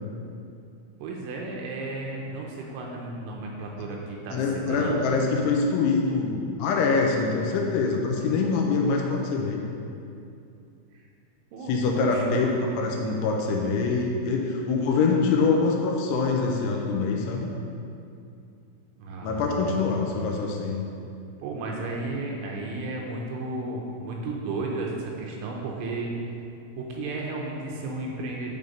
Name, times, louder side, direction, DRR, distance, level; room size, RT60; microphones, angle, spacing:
voice 1, 1.0-5.1 10.9-11.0 11.5-11.7 12.0-12.2 12.5-12.6 19.0-20.1 21.4-26.1 26.8-28.6, right 2 dB, 80° right, -1 dB, 2.9 m, -33 dB
voice 2, 4.3-9.6 11.7-17.5 19.2-20.9, left 4 dB, 85° left, 0 dB, 3.0 m, -24 dB
10.5 x 3.6 x 5.3 m, 2.6 s
omnidirectional pair, 5.7 m